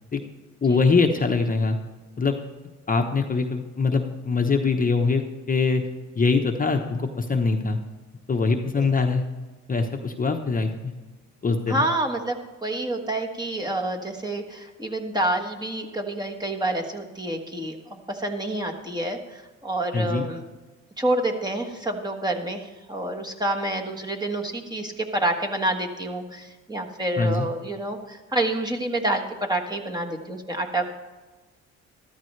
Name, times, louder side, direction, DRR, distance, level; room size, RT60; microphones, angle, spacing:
voice 1, 0.6-1.8 2.2-2.4 2.9-5.8 6.2-7.8 8.3-9.2 9.7-10.9 11.4-11.8 19.9-20.2 27.2-27.5, left 4 dB, 30° left, 4 dB, 1.0 m, -23 dB
voice 2, 11.7-20.4 21.0-30.9, right 1 dB, 15° right, 2 dB, 1.5 m, -28 dB
13.5 x 12.5 x 3.3 m, 1.2 s
cardioid pair, 90°, 30 cm